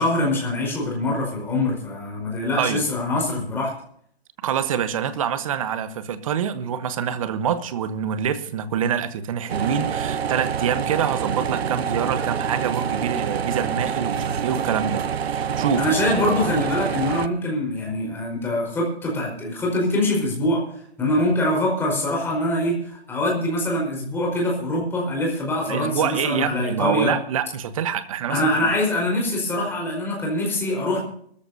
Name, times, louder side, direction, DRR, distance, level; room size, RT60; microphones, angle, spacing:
voice 1, 0.0-3.7 15.8-20.6 21.0-27.1 28.3-31.0, left 1 dB, 5° left, -2 dB, 4.7 m, -24 dB
voice 2, 4.4-15.9 25.7-28.5, right 8 dB, 30° right, 12 dB, 1.2 m, -26 dB
sound 1, 9.5-17.3, right 7 dB, 75° right, 0.8 m, -26 dB
23.5 x 14.0 x 2.8 m, 0.64 s
hypercardioid pair, 160°, 32 cm